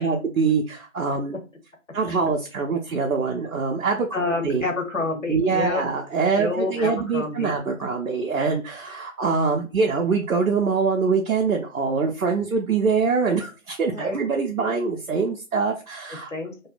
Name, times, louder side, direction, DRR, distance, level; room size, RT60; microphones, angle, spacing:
voice 1, 0.0-1.4 1.9-4.1 4.4-4.6 5.3-16.3, right 5 dB, 85° right, 1 dB, 0.6 m, -24 dB
voice 2, 4.1-5.8 6.4-7.5 13.9-14.2 16.3-16.7, left 3 dB, 65° left, 4 dB, 0.8 m, -28 dB
2.6 x 2.1 x 2.3 m, 0.33 s
figure-of-eight pair, 175°, 42 cm